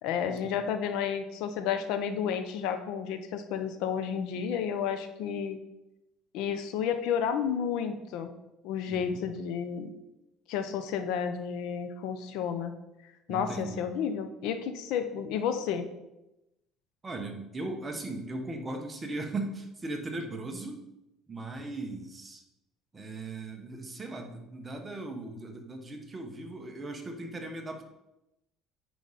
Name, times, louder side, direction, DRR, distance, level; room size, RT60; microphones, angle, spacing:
voice 1, 0.0-5.6 6.3-8.3 8.6-9.9 10.5-12.7 13.3-15.9, left 7 dB, 70° left, 9 dB, 0.8 m, -31 dB
voice 2, 8.9-9.2 13.3-13.8 17.0-20.8 21.3-22.4 22.9-27.9, right 2 dB, 15° right, 3 dB, 1.0 m, -38 dB
9.2 x 5.0 x 4.1 m, 0.92 s
cardioid pair, 140°, 0 cm